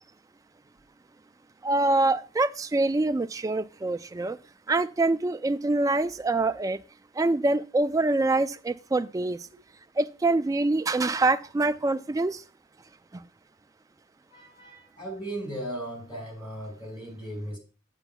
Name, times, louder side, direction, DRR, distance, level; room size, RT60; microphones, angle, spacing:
voice 1, 1.6-4.4 4.7-6.8 7.2-9.5 10.0-12.4, right 2 dB, 20° right, 0.3 m, -25 dB
voice 2, 14.3-17.6, right 1 dB, 25° left, 4.6 m, -37 dB
9.7 x 8.8 x 2.2 m
head